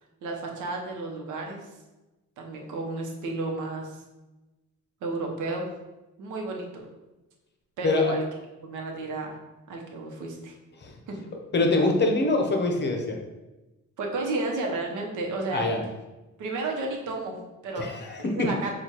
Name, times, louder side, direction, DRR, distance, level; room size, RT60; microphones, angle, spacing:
voice 1, 0.2-1.7 2.4-4.0 5.0-5.7 6.2-6.9 7.8-8.2 8.6-9.4 9.7-10.5 11.1-11.2 14.0-15.7 16.4-17.9 18.2-18.7, right 2 dB, 80° right, 1 dB, 0.9 m, -32 dB
voice 2, 7.8-8.1 10.8-10.9 11.5-13.2 15.5-15.8 17.8-18.5, left 2 dB, 35° left, 3 dB, 0.8 m, -24 dB
6.2 x 2.4 x 2.9 m, 1.1 s
cardioid pair, 90°, 30 cm